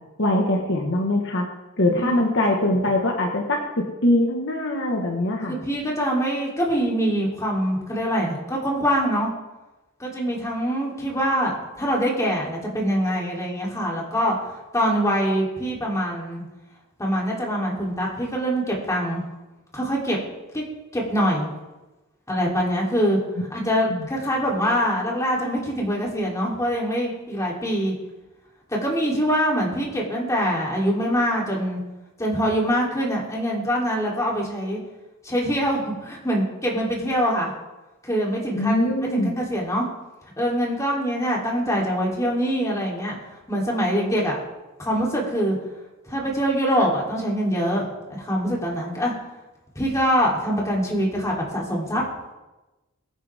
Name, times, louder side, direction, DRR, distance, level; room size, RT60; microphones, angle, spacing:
voice 1, 0.2-1.5 1.8-5.6 23.9-24.1 38.5-39.3, left 1 dB, 60° left, 1 dB, 1.6 m, -22 dB
voice 2, 2.0-2.3 5.5-9.3 10.0-16.5 17.0-19.2 19.7-20.2 20.5-20.6 20.9-21.5 22.3-23.2 23.5-27.9 28.7-31.8 32.2-34.8 35.2-37.5 38.0-39.9 40.4-43.2 43.5-44.4 44.8-45.6 46.1-49.1 49.8-52.0, equal, 15° left, -3 dB, 3.5 m, -24 dB
23.0 x 10.0 x 3.7 m, 1.1 s
head